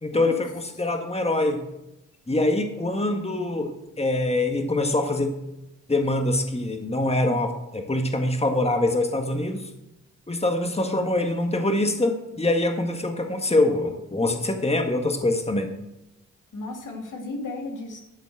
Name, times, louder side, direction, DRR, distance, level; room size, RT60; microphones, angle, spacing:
voice 1, 0.0-1.6 2.3-5.3 5.9-9.7 10.3-15.7, left 2 dB, 20° left, 5 dB, 1.6 m, -24 dB
voice 2, 16.5-18.0, left 2 dB, 75° left, 2 dB, 2.1 m, -35 dB
12.0 x 4.2 x 7.6 m, 0.90 s
cardioid pair, 45°, 31 cm